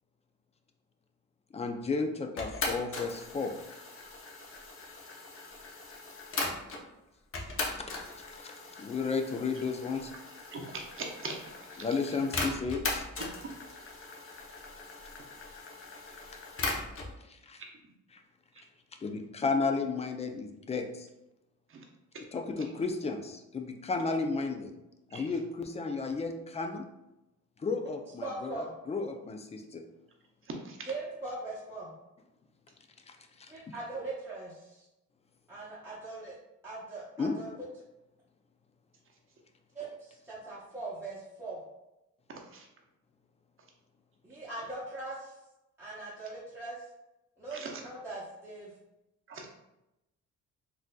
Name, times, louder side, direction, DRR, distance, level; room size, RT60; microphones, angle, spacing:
voice 1, 1.5-3.5 7.8-7.9 8.4-8.5 8.8-10.1 11.8-13.1 17.3-17.6 18.1-18.2 19.0-21.1 22.3-24.7 25.1-26.9 27.6-29.8 33.1-33.7 37.2-37.3, left 4 dB, 20° left, 5 dB, 0.4 m, -33 dB
sound 1, 2.4-6.8 7.3-17.1, left 3 dB, 45° left, 0.7 m, -39 dB
voice 2, 10.5-11.8 21.7-21.8 25.1-25.2 30.6-30.8 42.5-42.7 47.5-47.7 49.3-49.5, right 3 dB, 45° right, 1 dB, 0.7 m, -41 dB
voice 3, 28.2-28.8 30.8-31.9 33.5-34.8 35.5-36.3 36.6-37.6 39.7-41.6 44.2-45.3 45.8-46.9 47.4-48.7, right 2 dB, 10° right, -9 dB, 0.9 m, -40 dB
3.8 x 2.6 x 2.2 m, 0.92 s
cardioid pair, 90°, 30 cm